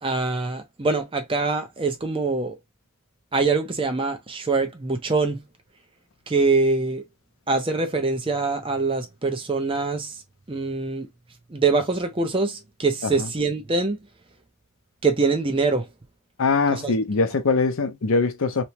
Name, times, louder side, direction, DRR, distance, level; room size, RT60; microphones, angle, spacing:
voice 1, 0.0-2.6 3.3-5.5 6.3-7.0 7.5-10.2 10.5-11.1 11.5-14.0 15.0-15.9 16.7-16.9, right 3 dB, 25° right, 0.5 m, -24 dB
voice 2, 16.4-18.6, left 4 dB, 70° left, 0.6 m, -22 dB
3.0 x 2.1 x 2.9 m
head